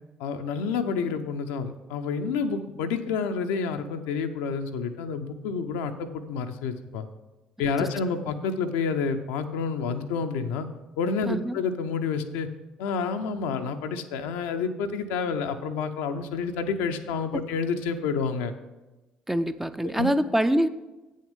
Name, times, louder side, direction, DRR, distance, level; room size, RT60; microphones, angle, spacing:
voice 1, 0.2-7.1 7.6-10.7 11.0-12.5 12.8-18.5 19.9-20.1, left 5 dB, 65° left, 6 dB, 0.6 m, -29 dB
voice 2, 11.3-11.6 19.3-20.7, equal, 5° right, 10 dB, 0.5 m, -25 dB
8.5 x 6.4 x 5.3 m, 1.1 s
figure-of-eight pair, 50°, 4 cm